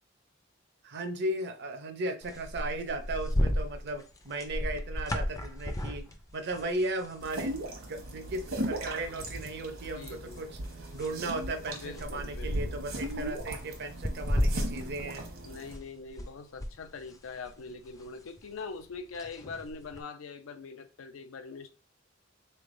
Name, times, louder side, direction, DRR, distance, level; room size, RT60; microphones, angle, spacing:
voice 1, 0.8-6.0 6.3-7.6 7.9-10.6 10.9-15.2, right 2 dB, 55° right, 0.6 m, -36 dB
sound 1, 2.2-7.6 7.9-8.1 8.4-9.2 9.7-16.3 16.6-20.0, equal, 15° left, 0.4 m, -34 dB
sound 2, 7.2-15.7, right 1 dB, 75° right, 1.1 m, -38 dB
voice 2, 9.9-10.4 11.8-12.8 15.4-21.7, left 4 dB, 75° left, 0.5 m, -43 dB
3.8 x 3.3 x 2.5 m
head